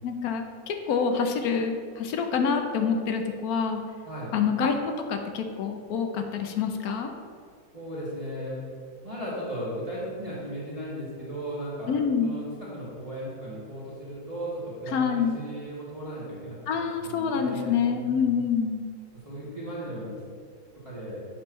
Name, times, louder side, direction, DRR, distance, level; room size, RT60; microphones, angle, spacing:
voice 1, 0.0-3.8 4.3-7.1 11.9-12.3 14.9-15.4 16.7-18.8, left 6 dB, 70° left, 5 dB, 0.9 m, -27 dB
voice 2, 7.7-8.6 9.0-11.9 12.2-12.5 12.7-18.4 19.2-20.1 20.8-21.2, right 1 dB, 20° right, -9 dB, 1.6 m, -36 dB
7.6 x 3.1 x 6.0 m, 2.1 s
omnidirectional pair, 2.0 m